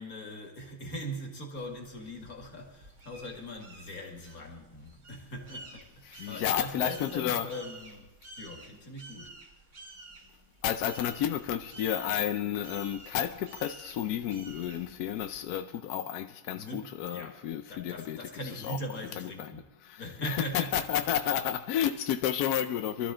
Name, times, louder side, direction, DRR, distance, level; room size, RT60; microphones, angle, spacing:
voice 1, 0.0-8.0 8.4-9.4 16.5-17.4 17.7-19.7 20.0-21.1, equal, 45° left, 2.6 m, -41 dB
sound 1, 1.6-15.5, right 2 dB, 40° right, 2.0 m, -52 dB
voice 2, 6.1-7.5 10.6-18.2 18.6-18.8 19.2-19.5 19.8-23.1, left 10 dB, 70° left, 0.9 m, -31 dB
24.0 x 13.0 x 3.9 m
omnidirectional pair, 2.1 m